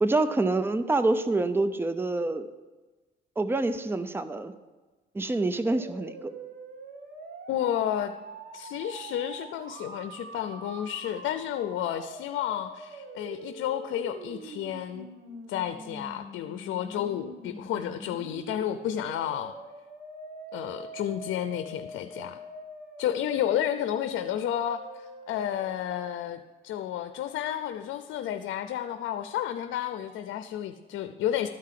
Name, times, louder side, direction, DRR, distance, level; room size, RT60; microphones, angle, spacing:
voice 1, 0.0-2.5 3.4-4.5 5.1-6.3, right 2 dB, 10° right, 10 dB, 0.7 m, -26 dB
sound 1, 5.6-25.5, right 2 dB, 50° right, 1.8 m, -44 dB
voice 2, 7.5-8.1 8.5-15.1 15.5-19.6 20.5-22.4 23.0-31.5, left 11 dB, 85° left, 9 dB, 0.6 m, -31 dB
13.0 x 4.9 x 7.5 m, 1.2 s
cardioid pair, 90°, 20 cm